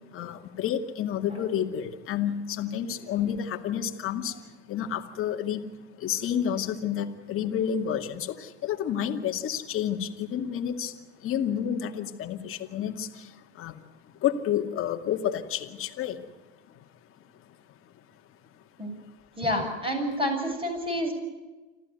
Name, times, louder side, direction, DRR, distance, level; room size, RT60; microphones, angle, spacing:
voice 1, 0.1-4.3 4.7-5.6 6.0-10.9 11.2-13.1 13.6-13.7 14.2-16.2, left 9 dB, 40° left, 4 dB, 2.3 m, -30 dB
voice 2, 19.4-21.1, equal, 15° right, 3 dB, 7.6 m, -29 dB
27.0 x 14.5 x 9.5 m, 1.2 s
hypercardioid pair, 95°, 34 cm